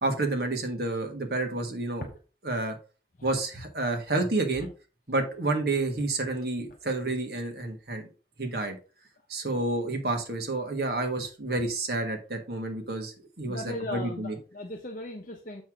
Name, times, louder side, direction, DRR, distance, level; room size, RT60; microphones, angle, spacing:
voice 1, 0.0-2.1 2.5-2.8 3.2-4.7 5.1-8.1 8.4-8.8 9.3-14.4, right 2 dB, 60° right, 4 dB, 1.7 m, -29 dB
voice 2, 9.5-9.8 13.5-15.6, left 1 dB, 50° left, 2 dB, 0.9 m, -38 dB
7.1 x 6.2 x 3.6 m, 0.34 s
head